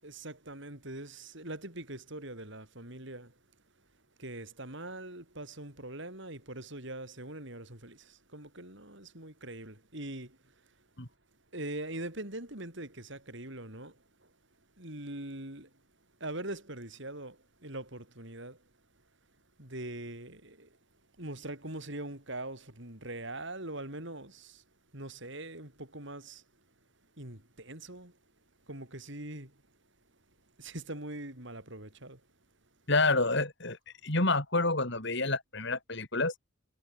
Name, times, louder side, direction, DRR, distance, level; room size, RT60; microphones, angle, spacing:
voice 1, 0.0-3.4 4.2-10.7 11.5-14.3 14.8-15.8 16.2-18.7 19.6-20.8 21.2-24.6 24.9-26.4 27.2-28.2 28.7-29.6 30.6-32.2, right 1 dB, 60° right, 7.1 m, -42 dB
voice 2, 32.9-33.8 34.0-36.3, left 2 dB, 55° left, 6.0 m, -28 dB
head